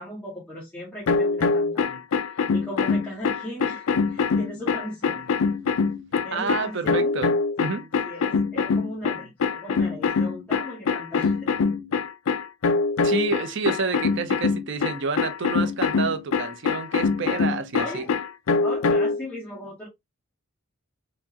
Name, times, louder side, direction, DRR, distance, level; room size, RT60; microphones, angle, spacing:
voice 1, 0.0-2.0 2.3-5.3 6.2-7.2 7.6-7.7 8.0-11.5 17.7-18.1 18.6-19.9, left 1 dB, 5° left, 1.1 m, -37 dB
sound 1, 1.1-19.2, left 4 dB, 75° left, 0.5 m, -24 dB
voice 2, 6.3-7.3 7.6-7.9 13.0-18.0, right 4 dB, 55° right, 0.5 m, -29 dB
4.4 x 2.1 x 2.7 m
head